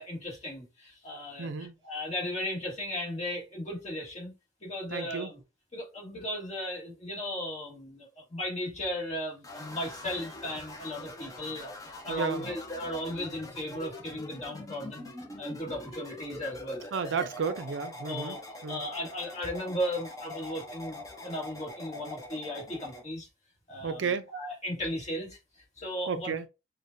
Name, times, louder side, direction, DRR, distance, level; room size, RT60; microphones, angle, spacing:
voice 1, 0.0-4.3 4.6-5.4 5.7-15.1 15.4-16.8 18.0-18.4 18.7-23.3 23.7-25.4 25.8-26.3, left 1 dB, 35° left, 1.6 m, -36 dB
voice 2, 1.4-1.8 4.9-5.3 12.1-12.5 16.9-18.8 23.8-24.3 26.1-26.5, right 5 dB, 65° right, 0.4 m, -32 dB
sound 1, 9.4-23.0, left 1 dB, 15° left, 0.6 m, -44 dB
6.3 x 2.2 x 2.6 m
head